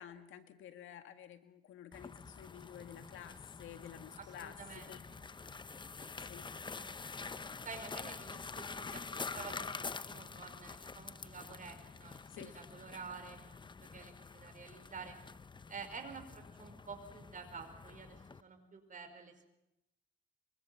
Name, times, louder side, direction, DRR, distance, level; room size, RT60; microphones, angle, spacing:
voice 1, 0.0-4.6 4.9-5.0 6.3-6.5 12.3-12.6, left 10 dB, 80° left, 8 dB, 2.0 m, -51 dB
sound 1, 1.9-18.4, left 4 dB, 25° left, 0.7 m, -47 dB
voice 2, 4.2-5.2 6.0-6.1 6.5-6.9 7.2-7.3 7.6-13.4 13.8-15.2 15.7-19.5, right 5 dB, 40° right, 6 dB, 5.1 m, -50 dB
24.0 x 24.0 x 5.9 m, 0.88 s
cardioid pair, 90°, 20 cm